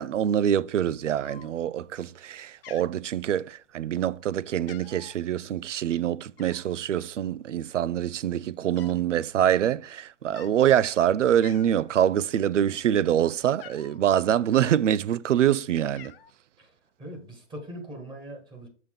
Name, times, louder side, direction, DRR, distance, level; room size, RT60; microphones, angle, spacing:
voice 1, 0.0-16.1, right 10 dB, 75° right, 0.5 m, -25 dB
Cat, 1.2-1.8 2.2-2.4 2.6-3.7 4.1-4.3 4.5-5.2 6.4-6.8 7.6-7.7 7.9-9.1 9.4-9.6 10.2-10.6 11.0-11.1 11.4-11.9 12.3-14.0 14.8-15.4 15.7-16.3, left 9 dB, 50° left, 0.7 m, -49 dB
voice 2, 16.6-18.7, right 1 dB, 10° right, 1.7 m, -41 dB
7.2 x 5.7 x 3.7 m
hypercardioid pair, 140°, 37 cm